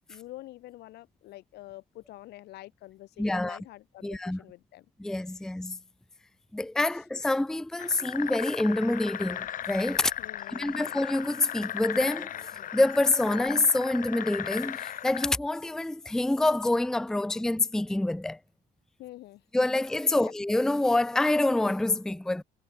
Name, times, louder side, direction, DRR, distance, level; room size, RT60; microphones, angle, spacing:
voice 1, 0.0-4.9 10.2-11.0 17.2-17.3 19.0-19.4 20.1-20.3, left 16 dB, 80° left, 2.2 m, -47 dB
voice 2, 3.2-3.6 4.0-4.4 5.0-5.8 6.5-10.1 10.5-12.3 12.7-18.4 19.5-22.4, left 2 dB, 5° left, 0.5 m, -26 dB
sound 1, 7.8-15.3, left 10 dB, 55° left, 1.3 m, -37 dB
cardioid pair, 110°, 17 cm